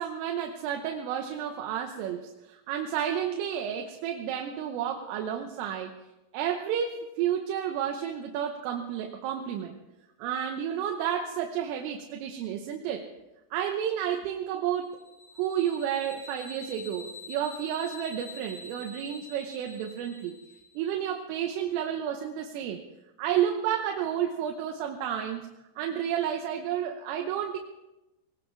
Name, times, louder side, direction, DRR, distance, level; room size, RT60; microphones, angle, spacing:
voice 1, 0.0-5.9 6.3-9.8 10.2-13.1 13.5-15.0 15.4-20.4 20.8-22.8 23.2-25.5 25.8-27.6, right 9 dB, 85° right, 2 dB, 3.6 m, -31 dB
sound 1, 14.9-20.8, left 2 dB, 65° left, 9.0 m, -46 dB
20.0 x 19.0 x 3.4 m, 0.98 s
omnidirectional pair, 5.7 m